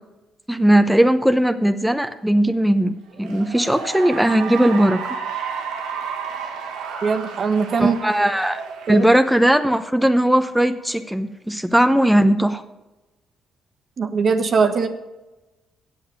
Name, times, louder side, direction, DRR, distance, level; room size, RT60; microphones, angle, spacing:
voice 1, 0.5-5.0 7.8-8.6 8.9-12.6, right 1 dB, 5° right, 8 dB, 0.8 m, -18 dB
Cheering / Applause, 3.1-9.8, right 6 dB, 85° right, 1.4 m, -32 dB
voice 2, 7.0-8.0 8.9-9.1 14.0-14.9, right 5 dB, 55° right, 8 dB, 1.3 m, -20 dB
8.4 x 7.8 x 8.7 m, 1.1 s
supercardioid pair, 60°, 0 cm